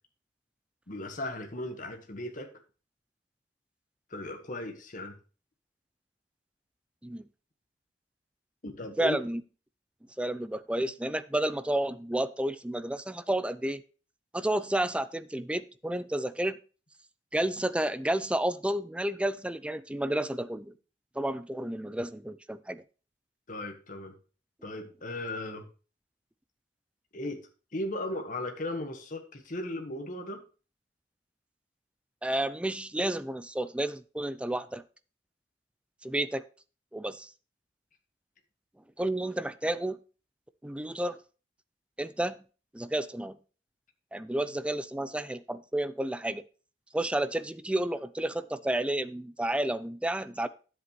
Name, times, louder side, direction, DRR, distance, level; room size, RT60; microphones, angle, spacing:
voice 1, 0.9-2.6 4.1-5.2 8.6-9.2 23.5-24.1 24.6-25.7 27.1-27.5 27.7-30.4, left 1 dB, 45° left, 5 dB, 1.4 m, -36 dB
voice 2, 9.0-9.4 10.2-13.8 14.3-16.6 17.3-20.7 21.2-22.8 32.2-34.8 36.0-36.5 36.9-37.3 39.0-40.0 40.6-41.2 42.0-42.4 42.7-43.4 44.1-46.4 46.9-50.5, right 1 dB, 5° right, 13 dB, 0.4 m, -31 dB
10.0 x 8.0 x 3.1 m, 0.36 s
head